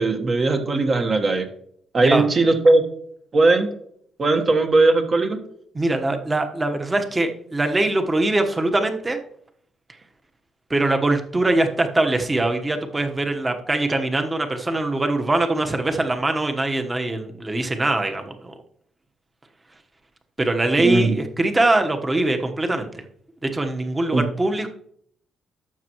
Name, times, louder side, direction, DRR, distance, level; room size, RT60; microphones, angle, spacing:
voice 1, 0.0-1.4 1.9-2.8 3.3-3.7 4.2-5.4 20.8-21.1 24.1-24.2, right 3 dB, 40° right, 4 dB, 1.4 m, -18 dB
voice 2, 5.7-9.2 10.7-18.5 20.4-22.9 23.4-24.7, right 2 dB, 20° right, 5 dB, 1.3 m, -22 dB
12.0 x 7.3 x 3.1 m, 0.67 s
cardioid pair, 90°, 0 cm